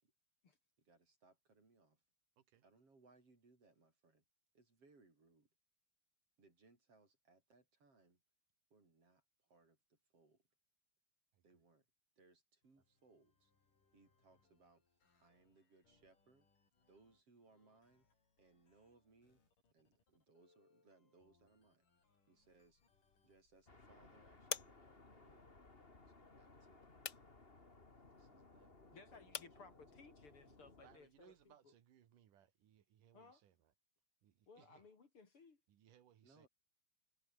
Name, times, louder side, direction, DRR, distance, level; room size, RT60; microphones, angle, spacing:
voice 1, 0.8-2.0 2.6-4.2 4.5-5.5 6.4-8.2 8.7-9.2 9.5-10.4 11.4-11.9 12.2-13.5 13.9-14.8 15.2-16.5 16.9-18.1 18.4-19.4 19.7-21.9 22.3-22.8 23.2-25.4 26.2-26.8 28.9-30.1 36.2-36.5, right 3 dB, 45° right, 7.0 m, -70 dB
sound 1, 12.6-23.4, left 4 dB, 85° left, 8.2 m, -79 dB
sound 2, 22.4-31.6, left 8 dB, 60° left, 1.1 m, -53 dB
sound 3, 23.7-31.0, left 3 dB, 20° left, 2.6 m, -63 dB
voice 2, 28.2-29.0 30.4-33.7 34.2-34.9 35.7-36.5, right 10 dB, 80° right, 3.4 m, -69 dB
voice 3, 28.9-31.7 33.1-33.4 34.5-35.6, left 4 dB, 45° left, 3.5 m, -61 dB
omnidirectional pair, 3.6 m